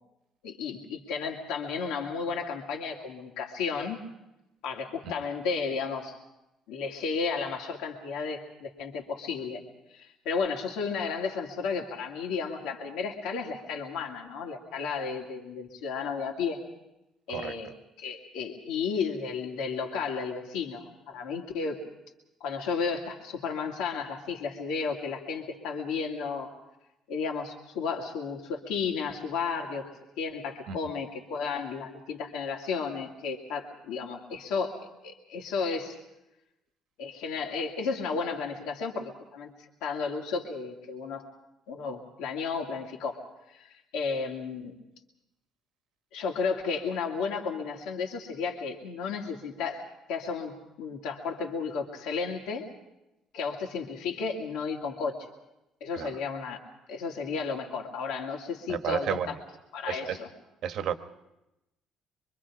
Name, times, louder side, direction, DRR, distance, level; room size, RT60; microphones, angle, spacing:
voice 1, 0.4-4.0 4.6-6.2 6.7-9.6 9.9-16.6 17.3-17.7 18.0-21.8 22.4-26.5 27.1-29.9 30.2-34.8 35.0-36.0 37.0-41.2 41.7-43.2 43.5-44.7 46.1-50.5 50.8-52.6 53.3-55.3 55.8-56.6 56.9-59.2 59.7-60.3, left 5 dB, 85° left, 0 dB, 2.5 m, -33 dB
voice 2, 17.3-17.7 30.7-30.9 55.9-56.2 58.7-59.4 59.8-60.2 60.6-60.9, right 8 dB, 60° right, 9 dB, 1.2 m, -32 dB
25.5 x 24.0 x 5.0 m, 0.92 s
cardioid pair, 140°, 0 cm